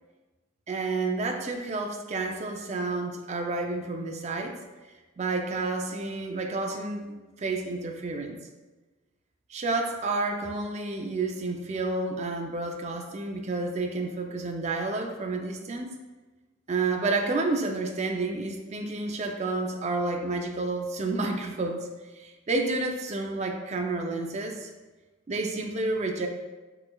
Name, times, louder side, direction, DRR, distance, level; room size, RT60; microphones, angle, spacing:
voice 1, 0.7-4.6 5.2-8.4 9.5-15.9 16.7-21.9 22.2-24.7 25.3-26.3, right 3 dB, 35° right, 3 dB, 0.4 m, -30 dB
6.5 x 3.2 x 2.3 m, 1.2 s
head